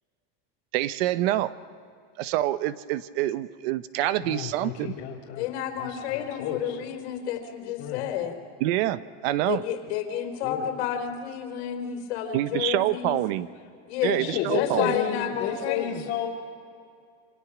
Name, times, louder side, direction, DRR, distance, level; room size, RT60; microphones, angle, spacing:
voice 1, 0.7-1.5 2.2-4.9 8.6-9.6 12.3-13.5 14.0-14.9, right 14 dB, 65° right, 14 dB, 1.0 m, -26 dB
voice 2, 4.1-6.8 7.8-8.0 10.4-10.7 14.2-16.3, left 9 dB, 50° left, -5 dB, 3.3 m, -32 dB
voice 3, 5.4-8.4 9.5-13.2 13.9-14.3 14.5-16.0, left 9 dB, 80° left, 5 dB, 3.8 m, -30 dB
28.0 x 26.0 x 6.1 m, 2.3 s
cardioid pair, 170°, 33 cm